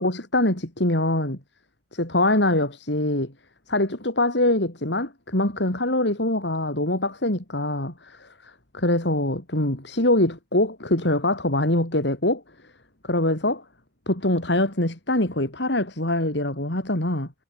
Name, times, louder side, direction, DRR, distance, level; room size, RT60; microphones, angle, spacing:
voice 1, 0.0-1.4 1.9-3.3 3.7-12.4 13.0-13.6 14.1-17.3, left 1 dB, 70° left, 4.7 m, -24 dB
head